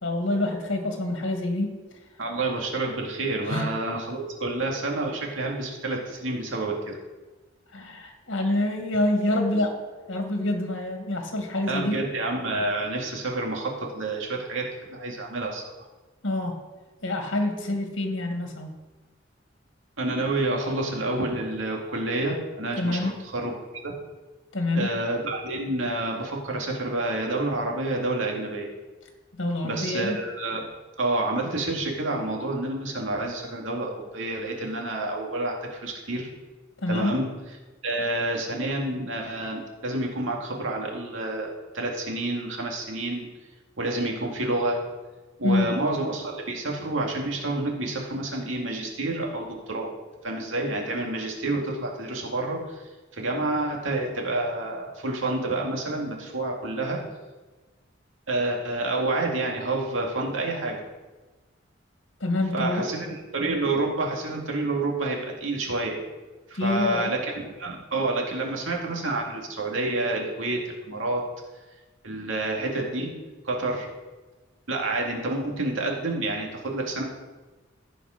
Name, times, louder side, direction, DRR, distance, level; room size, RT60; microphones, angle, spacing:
voice 1, 0.0-1.7 3.5-3.7 7.7-9.7 10.1-12.0 16.2-16.6 17.0-18.7 22.8-23.1 24.5-24.9 29.4-30.2 36.8-37.1 45.4-45.7 62.2-62.9 66.5-67.1, left 1 dB, 75° left, 3 dB, 1.8 m, -26 dB
voice 2, 2.2-7.0 11.7-15.6 20.0-23.5 23.8-23.9 24.7-28.7 29.6-30.7 31.0-36.3 36.9-37.2 37.8-41.5 41.7-43.3 43.8-44.8 45.4-49.9 50.2-52.8 53.1-57.0 58.3-60.8 62.5-66.0 66.5-67.3 67.6-70.6 70.9-71.2 72.0-73.1 73.4-73.9 74.7-77.0, right 2 dB, 80° right, 0 dB, 2.1 m, -28 dB
16.0 x 5.3 x 5.0 m, 1.2 s
head